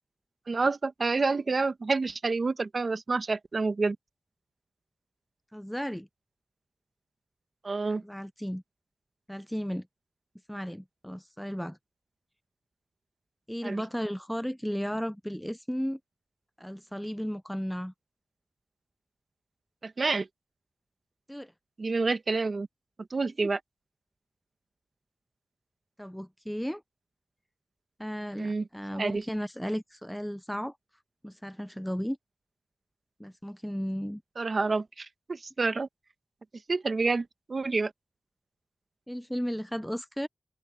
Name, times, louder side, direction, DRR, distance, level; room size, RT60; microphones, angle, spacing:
voice 1, 0.5-4.0 7.6-8.0 13.6-13.8 19.8-20.3 21.8-22.7 23.1-23.6 28.4-29.2 34.4-35.9 36.7-37.9, right 3 dB, 50° right, 1.2 m, -28 dB
voice 2, 5.5-6.1 8.0-8.6 9.3-9.9 10.5-11.8 13.5-16.0 16.6-17.9 21.3-21.5 23.2-23.3 26.0-26.8 28.0-30.8 31.2-32.2 33.2-34.2 39.1-40.3, equal, ahead, 0.4 m, -34 dB
open air
wide cardioid pair, 80°, 0 cm